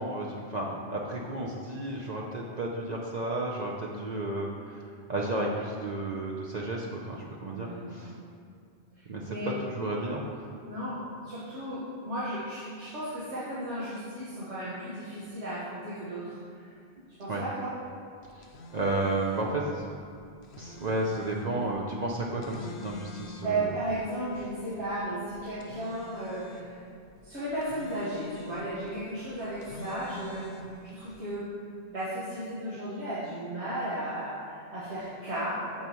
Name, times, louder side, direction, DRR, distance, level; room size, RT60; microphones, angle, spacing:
voice 1, 0.0-8.2 9.1-10.5 17.3-17.4 18.3-18.5 18.7-19.8 20.6-23.6, right 2 dB, 45° right, -2 dB, 0.7 m, -32 dB
voice 2, 7.5-8.0 9.3-9.5 10.7-16.7 17.2-17.8 23.4-26.8 27.2-30.5 30.8-31.5 31.9-35.9, right 1 dB, 85° right, -11 dB, 1.9 m, -35 dB
sound 1, 18.2-31.2, left 2 dB, 75° left, 0.9 m, -49 dB
8.5 x 7.1 x 3.1 m, 2.4 s
omnidirectional pair, 1.1 m